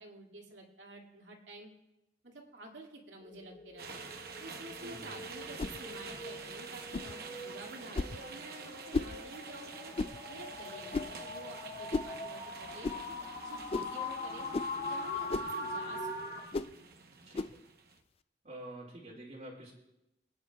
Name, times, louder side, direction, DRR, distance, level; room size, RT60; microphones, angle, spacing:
voice 1, 0.0-1.7 2.2-4.1 4.4-9.9 10.3-14.5 14.8-16.9, right 1 dB, 80° right, 0 dB, 2.3 m, -50 dB
sound 1, 3.2-16.5, left 2 dB, 50° left, 1.6 m, -42 dB
sound 2, 3.8-18.0, right 5 dB, 55° right, 1.0 m, -48 dB
voice 2, 4.8-5.1 17.2-17.6 18.4-19.7, right 1 dB, 40° right, -7 dB, 2.2 m, -47 dB
sound 3, 5.6-5.8 6.9-7.1 7.9-8.2 8.9-9.2 10.0-10.2 10.9-11.2 11.9-12.1 12.8-13.0 13.7-14.0 14.5-14.7 15.3-15.5 16.5-16.7 17.3-17.6, left 3 dB, 30° left, 0.3 m, -34 dB
23.5 x 9.7 x 2.4 m, 0.89 s
head